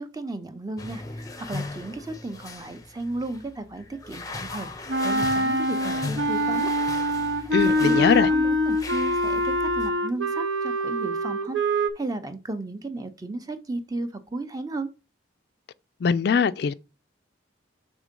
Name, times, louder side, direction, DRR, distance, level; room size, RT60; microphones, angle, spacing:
voice 1, 0.0-4.7 5.0-6.7 7.3-14.9, right 2 dB, 20° right, 0.6 m, -34 dB
sound 1, 0.8-9.9, left 3 dB, 20° left, 0.6 m, -38 dB
Wind instrument woodwind instrument, 4.9-11.9, equal, 80° right, 0.9 m, -24 dB
voice 2, 7.5-8.3 16.0-16.7, left 6 dB, 55° left, 0.3 m, -21 dB
6.1 x 3.7 x 5.2 m
head